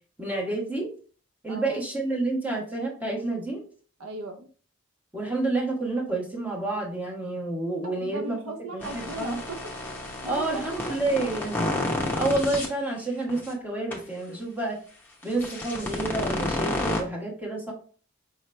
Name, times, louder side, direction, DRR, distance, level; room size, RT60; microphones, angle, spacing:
voice 1, 0.2-0.9 1.4-3.6 5.1-8.4 8.7-9.4 10.2-11.7 12.1-14.8 15.2-17.7, right 2 dB, 5° right, -3 dB, 1.2 m, -29 dB
voice 2, 1.5-1.8 4.0-4.5 7.8-9.7 10.2-11.4, right 2 dB, 75° right, 7 dB, 0.6 m, -38 dB
sound 1, 8.8-12.7 13.3-13.5 13.9-14.0 15.2-17.0, left 1 dB, 10° left, 0.9 m, -30 dB
5.0 x 3.1 x 3.2 m, 0.42 s
head